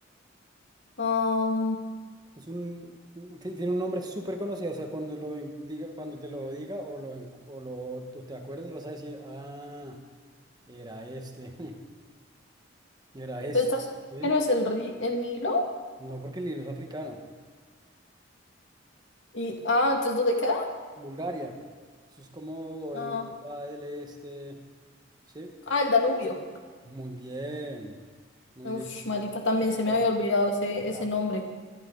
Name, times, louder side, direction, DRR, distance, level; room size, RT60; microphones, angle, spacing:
voice 1, 1.0-1.8 13.5-13.8 14.2-15.7 19.3-20.7 22.9-23.3 25.7-26.4 28.6-31.4, left 2 dB, 70° left, 2 dB, 2.2 m, -26 dB
voice 2, 2.4-10.0 10.7-11.8 13.1-13.6 14.1-14.3 16.0-17.2 21.0-21.5 22.2-24.6 25.3-25.5 26.8-28.0 28.5-28.9 29.9-30.0 30.9-31.1, right 1 dB, 20° right, 3 dB, 1.5 m, -37 dB
24.5 x 11.0 x 4.0 m, 1.5 s
head